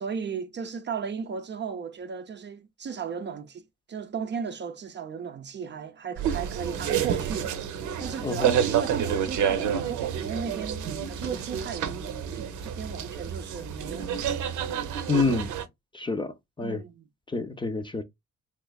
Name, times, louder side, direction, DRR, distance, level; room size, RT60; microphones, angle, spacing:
voice 1, 0.0-3.6 3.9-7.5 8.0-14.2 16.6-17.0, right 6 dB, 35° right, 0.5 m, -35 dB
sound 1, 6.2-15.6, right 8 dB, 80° right, 0.7 m, -29 dB
voice 2, 8.2-8.6 15.1-15.5 15.9-16.8 17.3-18.0, left 3 dB, 15° left, 0.5 m, -28 dB
3.6 x 3.1 x 2.2 m
cardioid pair, 90°, 30 cm